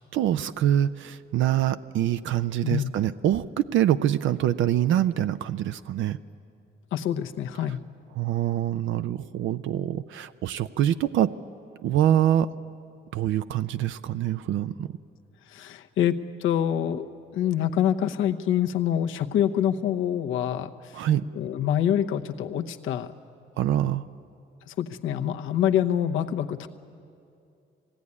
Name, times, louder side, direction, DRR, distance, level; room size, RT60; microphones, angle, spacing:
voice 1, 0.1-6.2 8.2-11.4 11.8-12.5 13.1-14.9 20.9-21.2 23.6-24.0, right 11 dB, 75° right, 12 dB, 0.5 m, -25 dB
voice 2, 6.9-7.8 15.5-17.1 17.3-21.1 21.3-23.1 24.7-26.7, left 10 dB, 85° left, 4 dB, 0.9 m, -26 dB
20.0 x 16.5 x 9.6 m, 2.5 s
cardioid pair, 90°, 20 cm